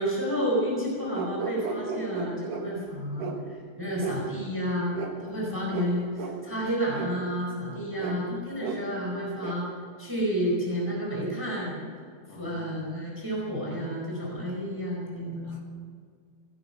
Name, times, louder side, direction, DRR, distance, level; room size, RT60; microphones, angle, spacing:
voice 1, 0.0-4.9 5.2-9.7 10.0-11.8 12.3-15.5, equal, 5° right, -3 dB, 4.1 m, -30 dB
sound 1, 1.1-2.6 3.2-3.4 4.0-4.2 4.9-5.1 5.7-5.9 6.2-6.4 6.9-7.1 8.0-8.2 8.6-8.8 9.4-9.5, right 5 dB, 80° right, 3.0 m, -34 dB
voice 2, 3.9-4.2 5.6-5.9 7.9-8.5 12.3-12.9 15.2-15.6, left 3 dB, 40° left, 0 dB, 2.8 m, -50 dB
16.5 x 11.0 x 6.9 m, 2.1 s
omnidirectional pair, 3.5 m